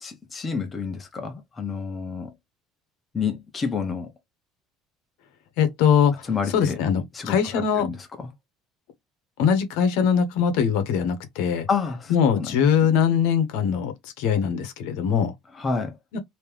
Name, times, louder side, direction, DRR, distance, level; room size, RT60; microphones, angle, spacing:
voice 1, 0.0-2.3 3.1-4.1 6.3-6.8 7.1-8.0 11.7-12.6 15.5-15.9, left 5 dB, 20° left, 1.1 m, -29 dB
voice 2, 5.6-6.1 6.5-7.9 9.4-11.7 12.1-15.3 16.1-16.2, left 7 dB, 85° left, 1.0 m, -22 dB
3.3 x 2.9 x 3.4 m
cardioid pair, 140°, 0 cm